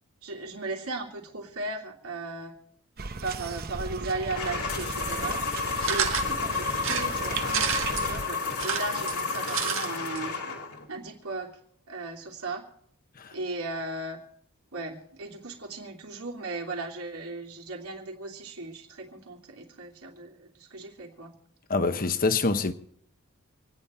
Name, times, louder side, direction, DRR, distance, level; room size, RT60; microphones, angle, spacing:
voice 1, 0.2-2.5 3.2-5.4 5.8-10.3 10.9-11.5 11.9-12.6 13.3-14.2 14.7-21.3, right 2 dB, 80° right, 3.1 m, -36 dB
sound 1, 3.0-8.3, right 4 dB, 45° right, 0.8 m, -37 dB
sound 2, 4.3-10.8, left 4 dB, 85° left, 2.5 m, -31 dB
sound 3, 5.8-6.3 6.8-8.1 8.5-9.9 10.2-10.3 10.5-10.6, right 8 dB, 65° right, 1.8 m, -29 dB
voice 2, 21.7-22.7, left 3 dB, 40° left, 1.0 m, -25 dB
27.5 x 9.9 x 4.4 m
head